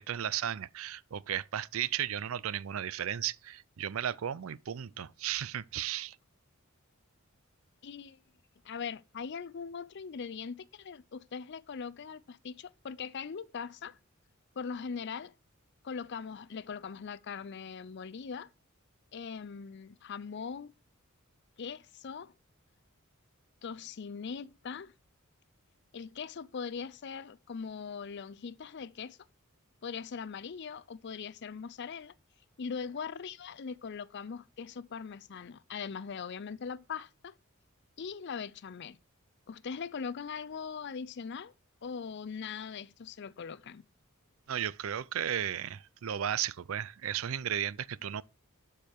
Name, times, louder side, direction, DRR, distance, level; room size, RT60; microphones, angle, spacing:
voice 1, 0.0-6.2 44.5-48.2, right 10 dB, 75° right, 0.5 m, -34 dB
voice 2, 7.8-8.2 8.6-14.0 14.6-15.3 15.8-18.5 19.1-20.7 21.6-22.3 23.6-24.9 25.9-29.2 29.8-32.1 32.6-37.3 38.0-39.0 39.5-41.5 41.8-43.8, left 6 dB, 55° left, 0.5 m, -41 dB
12.0 x 4.8 x 4.5 m
head